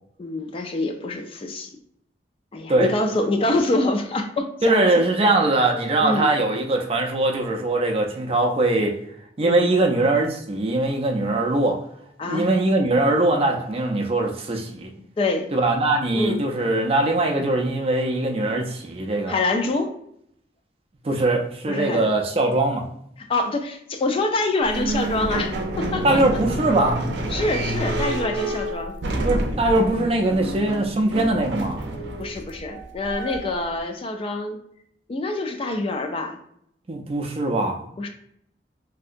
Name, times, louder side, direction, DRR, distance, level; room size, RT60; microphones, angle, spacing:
voice 1, 0.2-1.7 2.5-4.9 6.0-6.3 9.4-9.7 12.2-12.5 15.2-15.5 16.1-16.4 19.3-19.9 21.7-22.1 23.3-26.2 27.3-28.9 32.2-34.6 35.1-36.4 38.0-38.1, left 2 dB, 30° left, 5 dB, 0.3 m, -25 dB
voice 2, 4.6-8.9 9.4-11.8 12.3-14.9 15.5-19.3 21.0-22.9 26.0-27.1 29.2-31.8 36.9-37.8, right 2 dB, 35° right, 2 dB, 0.4 m, -21 dB
sound 1, 24.6-33.7, right 1 dB, 85° right, 0.5 m, -28 dB
3.2 x 2.7 x 2.5 m, 0.70 s
head